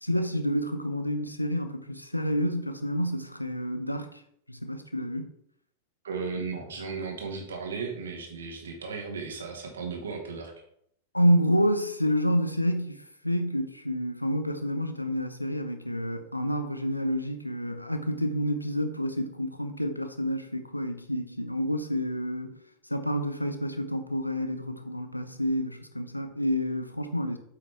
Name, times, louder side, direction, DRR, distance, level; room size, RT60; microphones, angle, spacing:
voice 1, 0.0-4.1 4.5-5.3 11.1-22.6 22.9-27.4, equal, 85° left, 0.8 m, -29 dB
voice 2, 6.0-10.5, right 5 dB, 65° right, 1.8 m, -35 dB
8.2 x 5.8 x 3.5 m
figure-of-eight pair, 90°, 0 cm